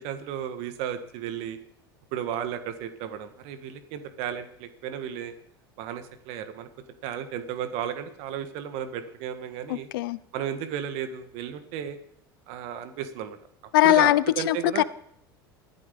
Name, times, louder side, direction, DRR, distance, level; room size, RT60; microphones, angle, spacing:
voice 1, 0.0-1.6 2.1-5.3 5.8-6.7 7.0-9.9 10.3-12.0 12.5-13.4 13.8-14.8, right 9 dB, 60° right, 1.7 m, -34 dB
voice 2, 9.7-10.2 13.7-14.8, left 16 dB, 70° left, 0.7 m, -21 dB
15.0 x 13.0 x 5.3 m
hypercardioid pair, 80°, 12 cm